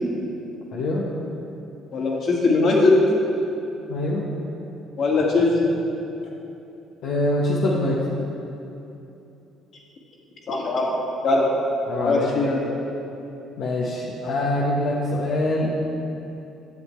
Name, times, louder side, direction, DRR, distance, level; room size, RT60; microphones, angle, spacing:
voice 1, 0.7-1.1 3.9-4.3 7.0-8.0 11.9-12.5 13.6-15.7, left 1 dB, 70° left, -5 dB, 1.0 m, -24 dB
voice 2, 1.9-3.0 5.0-5.7 10.5-10.9 11.2-11.5 12.0-12.6, left 3 dB, 55° left, -3 dB, 1.9 m, -20 dB
12.0 x 7.8 x 3.2 m, 2.9 s
supercardioid pair, 80°, 0 cm